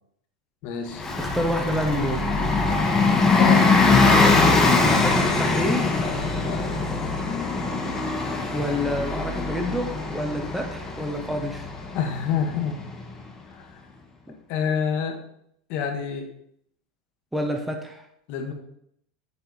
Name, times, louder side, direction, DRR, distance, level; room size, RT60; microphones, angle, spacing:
voice 1, 0.6-1.0 3.4-3.7 6.4-6.6 11.9-12.8 14.5-15.2 15.7-16.3 18.3-18.5, left 7 dB, 55° left, 4 dB, 1.2 m, -26 dB
Bus, 0.9-13.2, left 3 dB, 15° left, 1.0 m, -22 dB
voice 2, 1.2-2.3 4.8-5.9 8.5-11.7 14.3-14.4 17.3-18.0, equal, 5° right, 3 dB, 0.6 m, -28 dB
7.0 x 3.4 x 4.0 m, 0.72 s
supercardioid pair, 125°, 3 cm